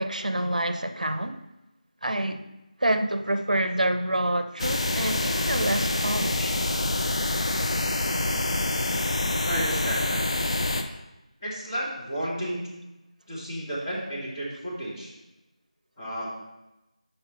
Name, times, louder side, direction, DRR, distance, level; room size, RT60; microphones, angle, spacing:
voice 1, 0.0-1.4 2.0-2.4 2.8-6.5, right 1 dB, 85° right, 0.5 m, -27 dB
sound 1, 4.6-10.8, left 2 dB, 50° left, 0.6 m, -26 dB
voice 2, 9.4-10.2 11.4-12.8 13.3-15.1 16.0-16.3, right 1 dB, 25° left, 2.1 m, -32 dB
5.4 x 4.4 x 5.4 m
figure-of-eight pair, 170°, 4 cm